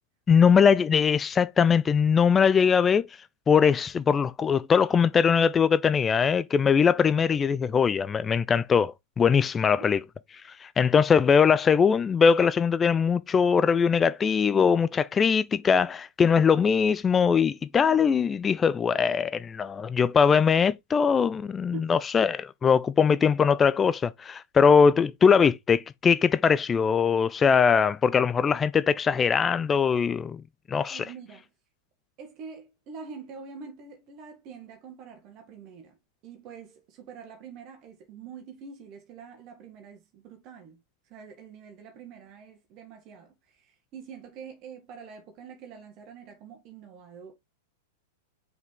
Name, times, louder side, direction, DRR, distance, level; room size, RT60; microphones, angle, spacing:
voice 1, 0.3-3.1 3.5-10.0 10.4-30.4 30.7-31.1, left 6 dB, 20° left, 0.4 m, -21 dB
voice 2, 21.6-21.9 30.9-31.5 32.2-36.0 36.2-40.8 41.0-47.3, right 6 dB, 40° right, 1.7 m, -45 dB
5.3 x 4.9 x 3.8 m
figure-of-eight pair, 95°, 0 cm